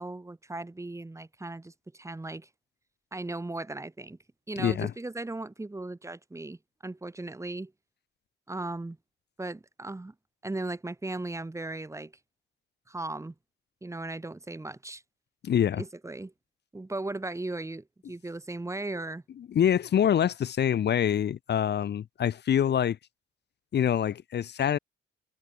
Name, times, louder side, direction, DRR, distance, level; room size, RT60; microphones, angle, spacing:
voice 1, 0.0-2.5 3.1-4.2 4.5-7.7 8.5-9.0 9.4-10.1 10.4-12.1 12.9-13.3 13.8-15.0 15.7-16.3 16.7-19.2, right 2 dB, 15° right, 2.7 m, -37 dB
voice 2, 4.6-4.9 15.4-15.8 19.4-23.0 23.7-24.8, left 9 dB, 60° left, 1.8 m, -25 dB
cardioid pair, 90°, 20 cm